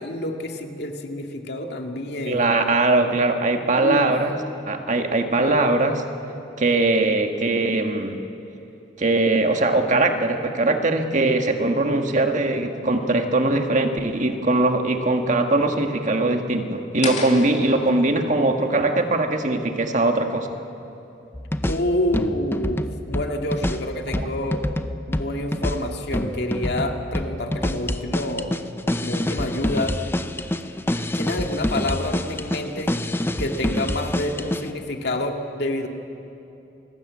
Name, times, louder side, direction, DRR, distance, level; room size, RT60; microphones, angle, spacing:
voice 1, 0.0-2.5 3.7-4.1 21.7-24.6 25.1-28.5 29.0-30.0 31.1-32.9 33.4-35.9, left 1 dB, 65° left, 3 dB, 2.2 m, -28 dB
voice 2, 2.3-4.4 4.7-6.0 6.6-8.2 9.0-20.5, right 2 dB, 45° right, 5 dB, 1.7 m, -21 dB
sound 1, 17.0-20.1, left 4 dB, 40° left, 2.3 m, -35 dB
sound 2, 21.3-34.7, left 1 dB, 15° left, 0.8 m, -27 dB
28.5 x 20.0 x 8.6 m, 2.9 s
head